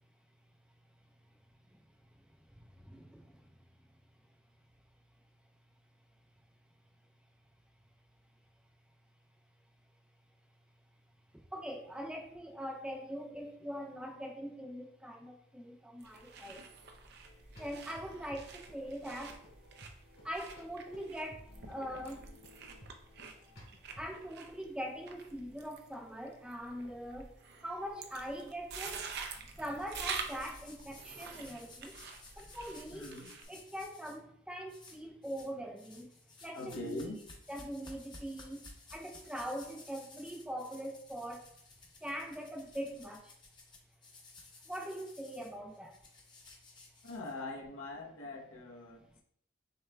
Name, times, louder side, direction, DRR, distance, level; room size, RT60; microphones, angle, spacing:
voice 1, 2.1-3.6 11.5-16.7 17.6-19.5 20.2-22.4 24.0-27.3 27.6-29.2 29.4-32.0 32.4-33.2 33.5-36.1 36.4-37.0 37.5-41.5 42.0-43.3 44.7-46.0, equal, 5° right, 2 dB, 0.5 m, -42 dB
sound 1, 16.0-33.4, right 5 dB, 55° right, 0.5 m, -47 dB
sound 2, 17.2-24.2, left 1 dB, 50° left, 1.8 m, -57 dB
sound 3, 29.8-34.2 34.7-35.5 35.8-47.7, left 3 dB, 20° left, 0.8 m, -56 dB
voice 2, 32.9-33.3 36.5-37.2 47.0-49.2, left 2 dB, 85° left, -1 dB, 1.0 m, -43 dB
6.3 x 3.4 x 2.3 m, 0.69 s
head